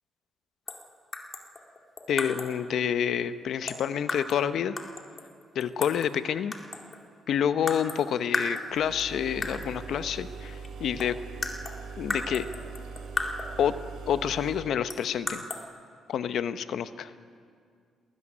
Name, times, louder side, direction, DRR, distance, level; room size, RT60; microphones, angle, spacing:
sound 1, 0.7-0.9 1.1-2.6 3.7-4.5 4.8-6.2 6.5-7.1 7.7-8.0 8.3-9.0 9.4-9.8 10.6-10.7 11.0-13.6 14.9-15.6, left 2 dB, 30° left, 2.4 m, -35 dB
voice 1, 2.1-4.8 5.5-6.5 7.3-11.2 12.0-12.5 13.6-13.8 14.1-15.4 16.1-17.1, left 8 dB, 70° left, 12 dB, 0.8 m, -28 dB
sound 2, 8.7-14.7, right 5 dB, 85° right, 4.2 m, -41 dB
19.5 x 13.5 x 9.9 m, 2.2 s
cardioid pair, 90°, 0 cm